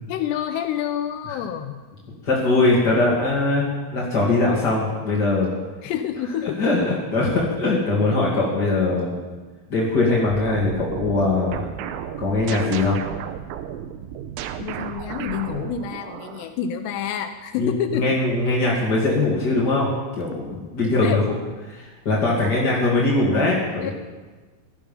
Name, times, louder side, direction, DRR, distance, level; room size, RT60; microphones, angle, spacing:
voice 1, 0.1-1.8 5.8-6.6 14.6-18.2 21.0-21.2 23.8-23.9, left 9 dB, 85° left, 7 dB, 2.4 m, -28 dB
voice 2, 2.2-5.5 6.4-9.2 9.7-11.7 12.2-13.0 17.6-19.9 20.2-21.2 21.7-23.9, left 2 dB, 40° left, -5 dB, 1.5 m, -21 dB
sound 1, 10.3-16.5, right 9 dB, 85° right, 3.6 m, -33 dB
18.0 x 14.0 x 5.5 m, 1.3 s
omnidirectional pair, 5.9 m